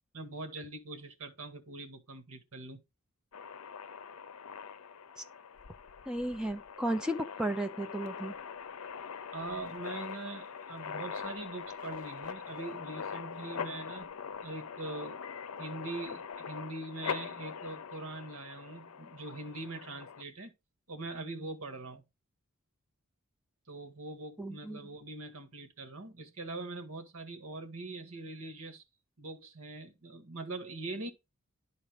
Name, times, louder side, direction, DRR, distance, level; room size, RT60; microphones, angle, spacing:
voice 1, 0.1-2.8 9.3-14.1 14.4-15.2 15.6-20.5 20.9-22.0 23.7-28.8 29.2-31.1, right 2 dB, 85° right, 1.8 m, -42 dB
sound 1, 3.3-20.2, left 6 dB, 80° left, 0.6 m, -42 dB
voice 2, 6.1-8.3 24.4-24.8, right 1 dB, 5° right, 0.6 m, -34 dB
11.5 x 4.1 x 5.1 m
head